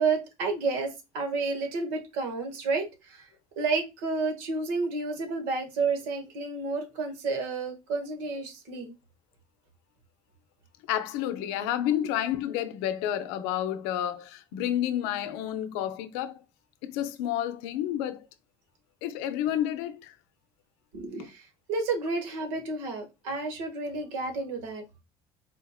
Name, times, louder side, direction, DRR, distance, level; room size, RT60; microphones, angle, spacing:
voice 1, 0.0-3.3 3.6-8.9 12.0-12.1 20.9-25.0, right 4 dB, 75° right, 1.3 m, -31 dB
voice 2, 10.9-16.4 16.8-18.3 19.0-20.1, left 11 dB, 75° left, 0.5 m, -30 dB
4.3 x 2.9 x 2.3 m
hypercardioid pair, 75°, 14 cm